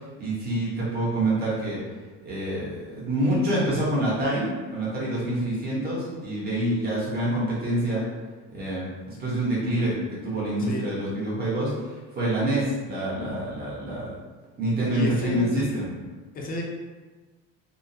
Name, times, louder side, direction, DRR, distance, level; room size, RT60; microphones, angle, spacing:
voice 1, 0.2-1.8 2.2-8.0 8.5-9.9 10.2-14.1 14.6-15.9, right 1 dB, 30° right, -7 dB, 1.1 m, -26 dB
voice 2, 14.9-15.5 16.3-16.6, left 3 dB, 30° left, -1 dB, 0.5 m, -31 dB
3.5 x 2.1 x 2.7 m, 1.3 s
cardioid pair, 145°, 31 cm